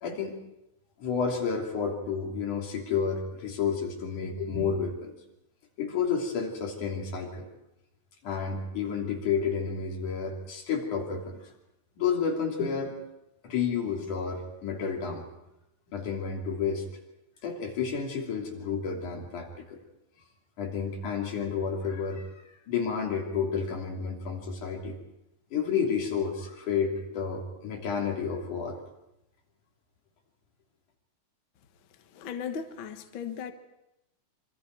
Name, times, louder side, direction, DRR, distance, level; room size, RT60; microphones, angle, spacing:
voice 1, 0.0-0.4 1.0-5.1 5.8-7.5 8.2-11.5 12.0-13.0 13.4-15.3 15.9-16.8 17.4-19.8 20.6-25.0 25.5-28.8, left 6 dB, 85° left, 0 dB, 4.5 m, -31 dB
voice 2, 32.1-33.5, left 7 dB, 50° left, 6 dB, 1.8 m, -36 dB
26.5 x 24.5 x 4.7 m, 0.87 s
omnidirectional pair, 3.4 m